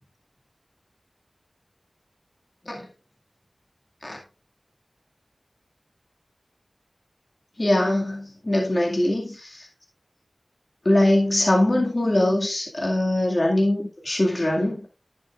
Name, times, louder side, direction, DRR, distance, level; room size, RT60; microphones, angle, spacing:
voice 1, 7.6-9.7 10.9-14.8, left 1 dB, 40° left, -1 dB, 2.2 m, -22 dB
10.5 x 8.5 x 2.5 m, 0.32 s
wide cardioid pair, 55°, 0 cm